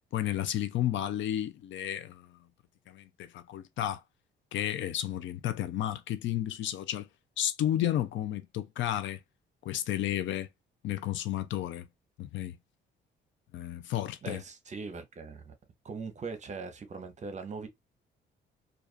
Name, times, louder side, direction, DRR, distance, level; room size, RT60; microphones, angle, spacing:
voice 1, 0.1-2.4 2.9-4.0 4.5-7.1 7.4-9.2 9.6-10.5 10.8-11.9 12.2-12.6 13.5-14.4, left 12 dB, 70° left, 0.5 m, -32 dB
voice 2, 14.2-15.5 15.8-17.7, right 4 dB, 35° right, 0.7 m, -40 dB
2.4 x 2.3 x 2.3 m
cardioid pair, 90°, 20 cm